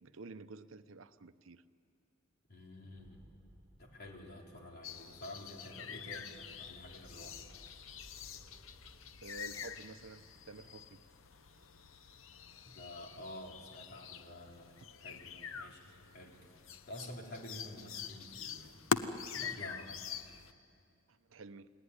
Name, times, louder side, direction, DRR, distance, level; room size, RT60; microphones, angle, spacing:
voice 1, 0.0-1.6 9.2-11.0 21.1-21.7, right 3 dB, 75° right, 12 dB, 0.8 m, -51 dB
voice 2, 2.5-3.3 3.8-7.4 12.6-14.7 15.0-16.4 16.9-18.8 19.3-20.0, left 1 dB, 50° left, 1 dB, 3.6 m, -49 dB
sound 1, 3.0-16.6 16.9-17.0 17.4-18.3, equal, 10° right, 4.8 m, -64 dB
sound 2, 4.8-20.5, left 6 dB, 80° left, 0.9 m, -44 dB
29.5 x 19.5 x 9.8 m, 2.4 s
head